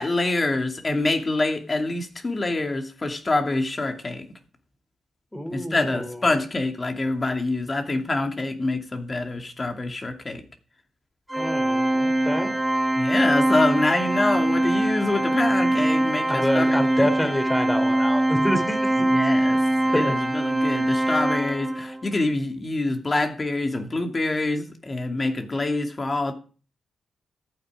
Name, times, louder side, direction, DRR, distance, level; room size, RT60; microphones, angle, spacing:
voice 1, 0.0-4.3 5.5-10.4 12.9-17.1 19.1-19.6 19.9-26.3, left 2 dB, 35° left, 2.6 m, -26 dB
voice 2, 5.3-6.4 11.4-12.6 16.3-19.1 19.9-20.2, equal, 10° left, 3.4 m, -27 dB
Organ, 11.3-22.0, right 1 dB, 10° right, 0.8 m, -23 dB
14.0 x 9.1 x 4.9 m
supercardioid pair, 45°, 0 cm